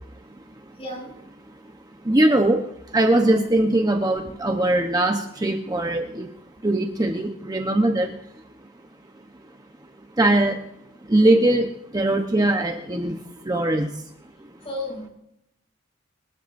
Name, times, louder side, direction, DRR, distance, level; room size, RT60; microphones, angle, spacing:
voice 1, 2.0-2.6 2.9-6.3 6.6-8.1 10.2-10.6 11.1-13.2 13.4-13.9, right 1 dB, 20° right, 4 dB, 0.9 m, -21 dB
voice 2, 14.6-15.1, left 1 dB, 30° left, -2 dB, 7.0 m, -32 dB
26.5 x 13.5 x 2.6 m, 0.78 s
head